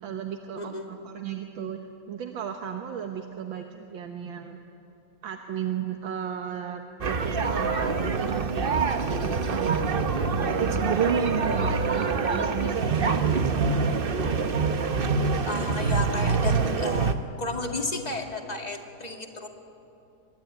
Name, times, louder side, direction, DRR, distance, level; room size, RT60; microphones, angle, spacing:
voice 1, 0.0-1.8 2.1-4.6 5.2-9.8 10.4-11.2 11.7-14.3, right 8 dB, 80° right, 4 dB, 1.9 m, -36 dB
voice 2, 0.6-1.0 15.4-19.5, left 2 dB, 20° left, 3 dB, 2.2 m, -33 dB
sound 1, 7.0-17.1, right 4 dB, 40° right, 0.8 m, -25 dB
25.5 x 22.0 x 9.4 m, 2.8 s
omnidirectional pair, 2.1 m